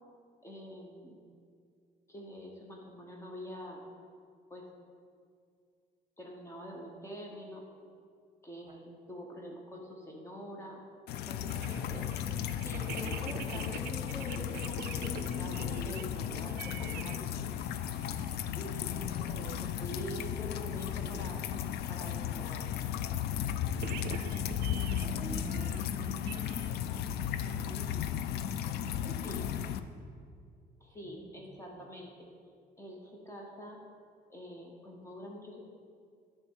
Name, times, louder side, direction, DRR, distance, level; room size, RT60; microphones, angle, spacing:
voice 1, 0.4-1.2 2.1-3.8 4.5-4.7 6.2-7.6 8.4-10.8 11.3-12.1 12.6-17.5 18.5-21.4 21.9-22.7 29.2-29.4 30.8-32.3 32.8-33.8 34.3-35.6, equal, 15° left, -1 dB, 1.0 m, -45 dB
sound 1, 11.1-29.8, left 10 dB, 75° left, 0.4 m, -35 dB
sound 2, 11.4-17.2 17.4-18.4 18.6-18.8 19.1-19.6 19.8-20.0 20.4-21.7 23.6-26.7, right 10 dB, 65° right, 0.4 m, -46 dB
voice 2, 18.5-19.5 24.0-28.2 28.5-29.2 31.0-31.8, right 2 dB, 25° right, 1 dB, 1.3 m, -48 dB
9.0 x 3.5 x 6.4 m, 2.2 s
cardioid pair, 110°, 17 cm